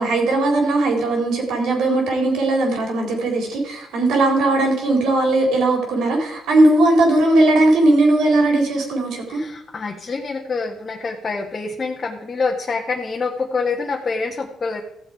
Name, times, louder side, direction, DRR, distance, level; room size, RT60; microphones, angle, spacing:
voice 1, 0.0-9.4, right 2 dB, 75° right, 1 dB, 3.9 m, -18 dB
voice 2, 9.3-14.8, left 4 dB, 35° left, 0 dB, 1.4 m, -26 dB
15.0 x 7.4 x 4.9 m, 0.86 s
cardioid pair, 90°, 0 cm